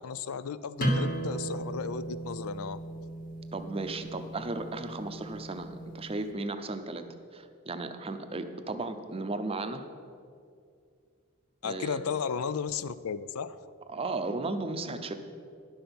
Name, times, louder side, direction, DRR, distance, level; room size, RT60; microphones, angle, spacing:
voice 1, 0.0-2.8 11.6-13.6, left 6 dB, 75° left, 16 dB, 0.4 m, -34 dB
sound 1, 0.8-6.2, right 1 dB, 40° left, 1.6 m, -35 dB
voice 2, 3.5-7.0 7.3-9.8 11.6-12.0 13.9-15.1, right 2 dB, 25° right, 8 dB, 0.6 m, -35 dB
11.5 x 5.9 x 7.0 m, 2.3 s
head